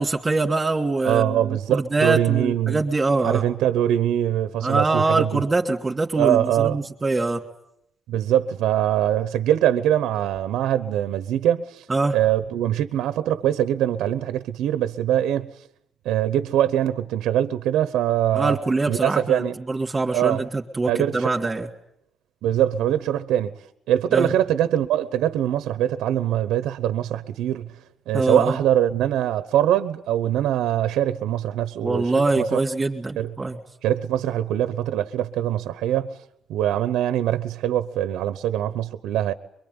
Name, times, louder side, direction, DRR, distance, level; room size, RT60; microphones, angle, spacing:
voice 1, 0.0-3.4 4.6-7.4 11.9-12.2 18.3-21.7 24.1-24.3 28.1-28.6 31.8-33.6, right 3 dB, 20° right, 3.0 m, -23 dB
voice 2, 1.0-2.8 3.2-5.4 6.2-6.8 8.1-11.8 12.1-15.5 16.0-18.6 18.9-19.6 20.1-20.4 20.9-21.3 22.4-23.6 23.9-27.7 28.1-32.6 33.2-33.3 33.8-36.2 36.5-39.3, right 11 dB, 90° right, 1.0 m, -23 dB
24.0 x 23.0 x 9.8 m
cardioid pair, 90°, 0 cm